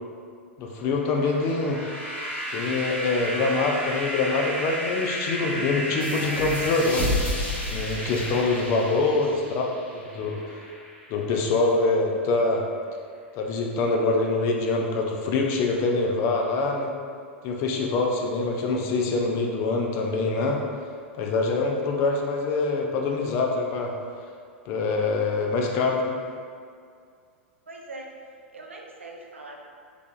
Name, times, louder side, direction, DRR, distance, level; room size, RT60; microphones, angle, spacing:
voice 1, 0.6-1.8 2.5-7.2 7.7-9.7 9.9-10.6 11.1-12.7 13.3-16.9 17.4-20.6 21.2-23.9 24.7-26.2, left 3 dB, 40° left, 1 dB, 0.5 m, -25 dB
sound 1, 0.9-7.9, equal, 80° left, 1.0 m, -32 dB
sound 2, 6.0-11.2, left 1 dB, 20° left, 1.0 m, -32 dB
voice 2, 8.9-9.6 27.7-28.2 28.5-29.6, right 2 dB, 80° right, 0 dB, 0.4 m, -42 dB
3.4 x 3.3 x 2.3 m, 2.2 s
figure-of-eight pair, 95°, 7 cm